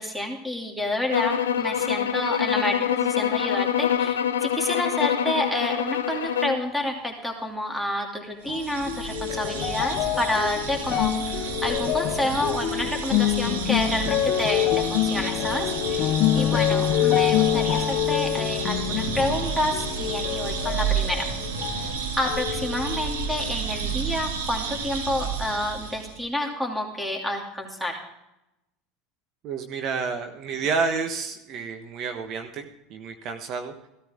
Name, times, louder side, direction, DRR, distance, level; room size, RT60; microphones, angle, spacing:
voice 1, 0.0-21.3 21.8-21.9 22.2-28.0, left 1 dB, ahead, 1 dB, 2.7 m, -29 dB
sound 1, 1.1-6.6, left 9 dB, 85° left, 0.7 m, -25 dB
sound 2, 8.4-21.9 22.2-23.2 23.9-24.0, left 12 dB, 55° left, 0.9 m, -26 dB
sound 3, 8.4-26.2, right 6 dB, 80° right, 2.1 m, -31 dB
voice 2, 29.4-33.7, right 5 dB, 50° right, 6 dB, 1.2 m, -30 dB
15.5 x 13.5 x 3.7 m, 0.89 s
hypercardioid pair, 85°, 0 cm